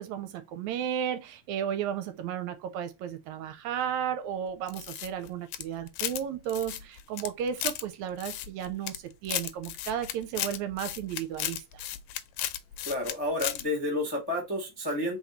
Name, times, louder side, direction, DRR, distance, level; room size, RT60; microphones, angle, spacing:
voice 1, 0.0-11.8, right 9 dB, 80° right, 1.9 m, -34 dB
sound 1, 4.7-6.2 6.5-7.8 8.2-9.0 9.3-13.1 13.4-13.6, left 13 dB, 80° left, 1.9 m, -34 dB
voice 2, 12.8-15.2, left 1 dB, 15° left, 0.9 m, -30 dB
4.3 x 4.2 x 2.9 m
omnidirectional pair, 3.5 m